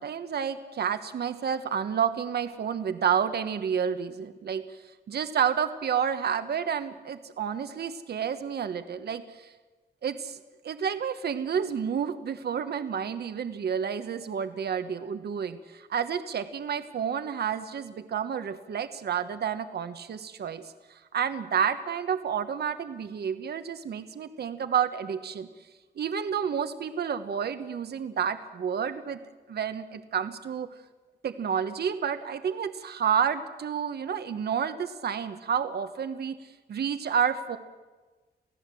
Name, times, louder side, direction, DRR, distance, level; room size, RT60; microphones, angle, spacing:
voice 1, 0.0-4.6 5.1-9.5 10.0-10.4 10.6-20.6 20.9-25.5 26.0-29.2 29.5-30.7 31.2-36.4 36.7-37.6, right 7 dB, 70° right, 10 dB, 1.2 m, -30 dB
29.0 x 16.5 x 7.7 m, 1.3 s
wide cardioid pair, 175°, 17 cm